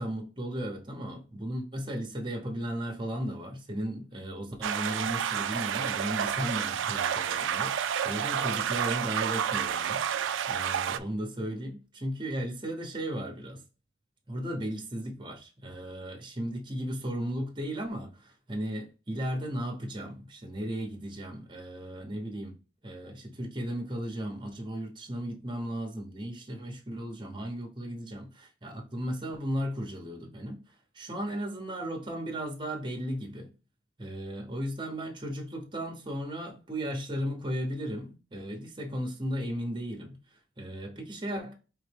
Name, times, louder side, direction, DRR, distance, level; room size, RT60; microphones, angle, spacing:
voice 1, 0.0-13.6 14.3-22.6 22.8-30.6 30.9-33.5 34.0-41.5, equal, 25° right, 0.9 m, -35 dB
sound 1, 4.6-11.0, right 8 dB, 75° right, 0.3 m, -30 dB
4.2 x 3.7 x 3.4 m
head